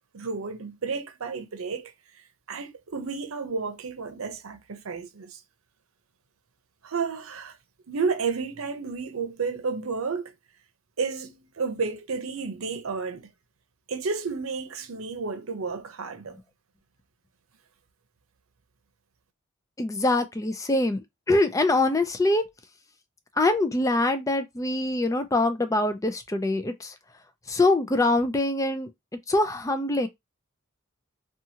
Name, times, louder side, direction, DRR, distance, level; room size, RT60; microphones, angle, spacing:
voice 1, 0.1-1.9 2.5-5.4 6.8-7.6 7.9-10.3 11.0-13.3 13.9-16.4, right 5 dB, 85° right, 0.7 m, -31 dB
voice 2, 19.8-22.4 23.4-26.9 27.5-28.9 29.3-30.1, left 2 dB, 15° left, 0.4 m, -24 dB
2.8 x 2.4 x 2.8 m
head